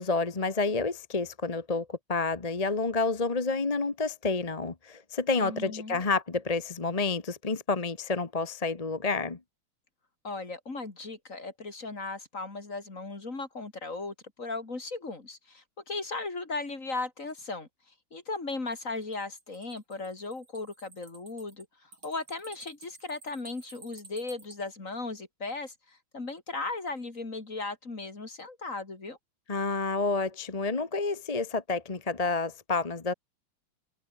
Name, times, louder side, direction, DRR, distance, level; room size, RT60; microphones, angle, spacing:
voice 1, 0.0-9.4 29.5-33.1, left 3 dB, 25° left, 1.0 m, -29 dB
voice 2, 5.4-6.0 10.2-17.7 18.1-29.2, left 3 dB, 40° left, 3.8 m, -37 dB
sound 1, 19.0-24.6, right 3 dB, 85° right, 5.8 m, -53 dB
omnidirectional pair, 2.2 m